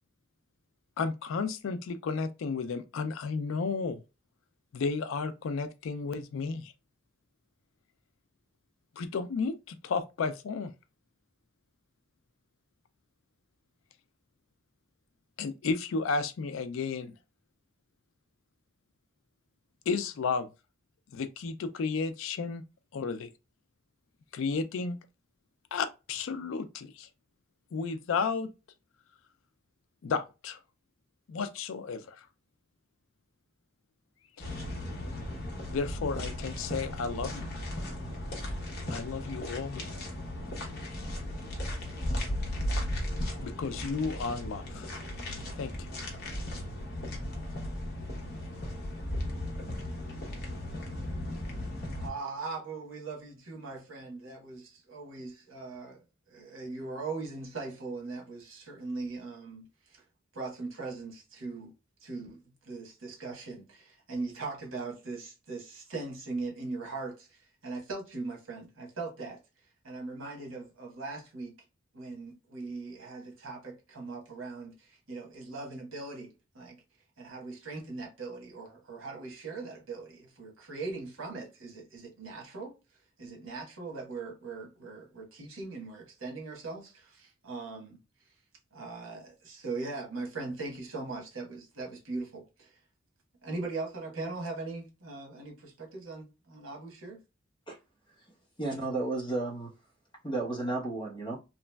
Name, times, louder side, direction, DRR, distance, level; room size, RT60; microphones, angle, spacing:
voice 1, 1.0-4.0 4.7-6.7 9.0-10.7 15.4-17.1 19.9-20.5 21.1-22.6 22.9-23.3 24.3-25.0 25.7-27.1 27.7-28.5 30.0-30.6 31.3-32.2 34.4-34.5 35.7-37.5 38.9-39.8 43.4-44.9 45.6-45.7, left 4 dB, 80° left, 0.4 m, -33 dB
sound 1, 34.4-52.1, left 1 dB, 50° left, 0.9 m, -36 dB
voice 2, 52.0-60.0 60.3-61.7 62.0-69.4 69.8-71.5 71.9-76.8 77.2-82.7 83.2-88.0 88.7-92.8 93.4-97.2, right 3 dB, 80° right, 1.1 m, -40 dB
voice 3, 98.6-99.7 100.2-101.4, right 2 dB, 25° left, 0.9 m, -32 dB
2.9 x 2.4 x 2.2 m
head